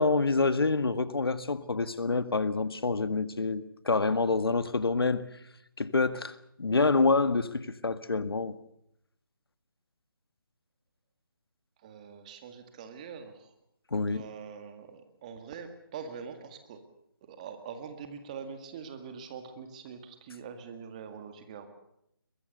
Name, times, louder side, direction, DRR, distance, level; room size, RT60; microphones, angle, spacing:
voice 1, 0.0-5.2 5.8-8.6 13.9-14.2, left 3 dB, 85° left, 1.8 m, -27 dB
voice 2, 11.8-13.5 14.0-16.8 17.2-21.7, right 6 dB, 20° right, 1.9 m, -44 dB
22.5 x 21.0 x 6.6 m
hypercardioid pair, 170°, 12 cm